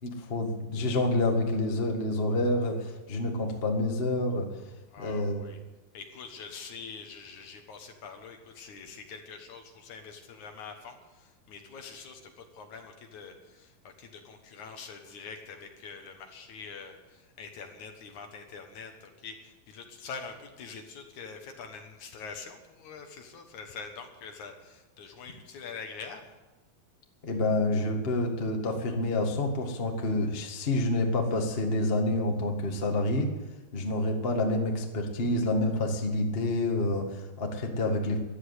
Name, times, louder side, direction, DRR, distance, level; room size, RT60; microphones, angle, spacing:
voice 1, 0.0-4.5 5.0-5.5 27.2-33.3 33.7-38.2, left 2 dB, 35° left, 2 dB, 0.9 m, -28 dB
voice 2, 4.9-5.6 5.9-26.3, left 5 dB, 60° left, 5 dB, 2.5 m, -45 dB
15.0 x 11.0 x 8.2 m, 1.1 s
omnidirectional pair, 4.3 m